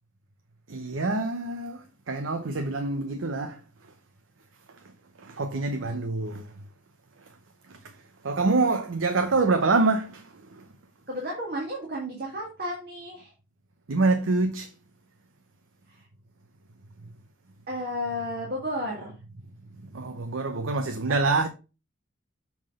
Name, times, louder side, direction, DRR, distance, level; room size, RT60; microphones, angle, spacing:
voice 1, 0.7-3.6 5.2-6.5 7.7-7.8 8.2-10.6 13.9-14.7 19.9-21.5, right 3 dB, 80° right, 0.8 m, -26 dB
voice 2, 11.1-13.3 15.9-16.1 17.7-19.2, equal, 50° right, 2.0 m, -33 dB
7.2 x 3.9 x 4.9 m
head